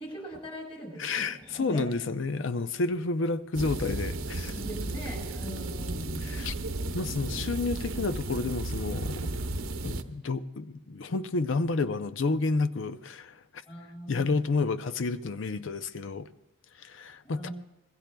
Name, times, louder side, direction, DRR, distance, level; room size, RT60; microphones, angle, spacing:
voice 1, 0.0-1.9 4.5-6.4 13.7-14.4 17.2-17.5, right 1 dB, 25° left, 6.2 m, -41 dB
voice 2, 1.0-4.5 6.2-6.5 6.9-9.3 9.8-13.4 14.1-16.3 16.8-17.5, left 3 dB, 60° left, 0.5 m, -30 dB
sound 1, 3.5-10.0, right 2 dB, 70° right, 0.9 m, -34 dB
26.0 x 21.0 x 2.3 m
head